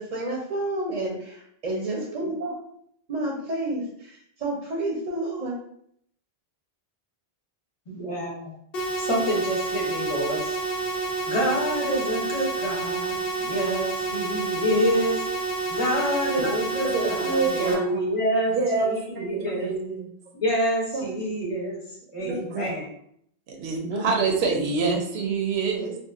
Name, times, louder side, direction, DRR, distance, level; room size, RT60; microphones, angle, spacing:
voice 1, 0.0-2.6 3.1-5.5 16.4-16.5 16.8-16.9 17.6-17.7 18.7-18.9 19.5-19.7 22.2-22.7 23.9-24.1, right 2 dB, 50° right, -2 dB, 0.6 m, -30 dB
voice 2, 7.9-8.5 9.0-10.6 11.3-15.2 15.7-19.7 20.3-21.8 22.1-22.9, equal, 35° left, -3 dB, 0.7 m, -27 dB
sound 1, 8.7-17.7, right 3 dB, 70° left, 0.8 m, -29 dB
voice 3, 16.9-18.2 18.5-20.1 20.9-21.2 22.2-22.4 23.5-26.0, right 4 dB, 85° right, 2 dB, 0.8 m, -27 dB
2.8 x 2.3 x 2.4 m, 0.69 s
omnidirectional pair, 1.0 m